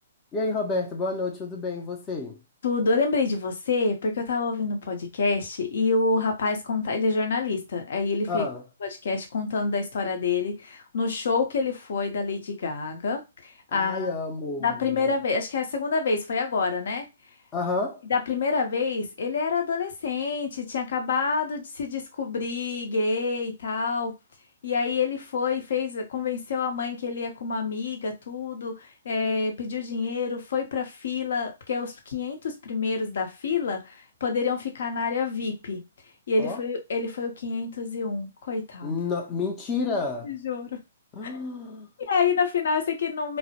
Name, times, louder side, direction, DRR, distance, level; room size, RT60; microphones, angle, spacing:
voice 1, 0.3-2.4 8.3-8.6 13.7-15.1 17.5-18.0 36.4-36.6 38.8-40.3 41.1-41.9, left 3 dB, 20° left, 0.5 m, -30 dB
voice 2, 2.6-8.5 8.8-14.1 14.6-17.0 18.1-24.2 24.6-35.8 36.3-39.0 40.2-40.8 42.1-43.4, left 4 dB, 65° left, 0.7 m, -27 dB
2.1 x 2.0 x 2.8 m
hypercardioid pair, 145°, 0 cm